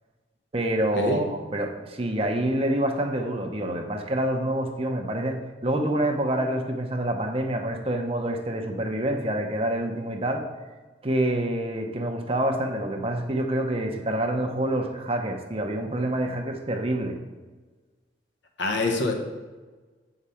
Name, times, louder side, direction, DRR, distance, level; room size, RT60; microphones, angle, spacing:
voice 1, 0.5-10.4 11.0-17.2, right 1 dB, 35° right, 3 dB, 0.8 m, -27 dB
voice 2, 18.6-19.1, left 2 dB, 80° left, 2 dB, 1.2 m, -24 dB
7.9 x 4.9 x 5.7 m, 1.3 s
head